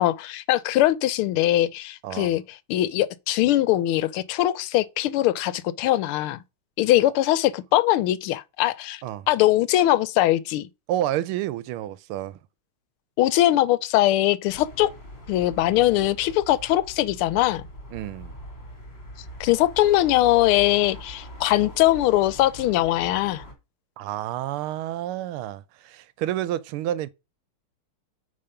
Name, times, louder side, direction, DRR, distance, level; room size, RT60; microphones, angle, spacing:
voice 1, 0.0-2.4 2.7-6.4 6.8-10.7 13.2-14.9 15.3-17.6 19.4-23.4, left 14 dB, 85° left, 1.5 m, -21 dB
voice 2, 2.0-2.4 9.0-9.3 10.9-12.4 17.9-18.3 24.0-27.1, right 13 dB, 80° right, 1.5 m, -29 dB
sound 1, 14.5-23.5, equal, 30° left, 2.4 m, -42 dB
8.6 x 3.6 x 5.7 m
omnidirectional pair, 2.3 m